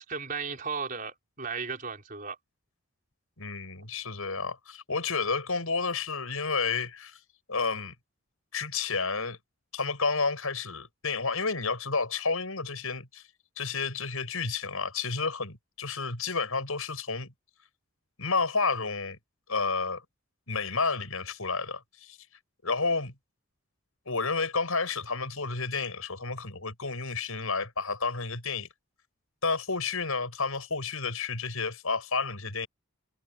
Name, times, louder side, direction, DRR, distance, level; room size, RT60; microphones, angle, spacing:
voice 1, 0.0-2.4, right 5 dB, 40° right, 4.7 m, -35 dB
voice 2, 3.4-7.2 7.5-7.9 8.5-9.4 9.7-13.2 13.6-17.3 18.2-19.2 19.5-20.0 20.5-22.2 22.6-23.1 24.1-28.7 29.4-32.7, left 4 dB, 85° left, 6.3 m, -31 dB
head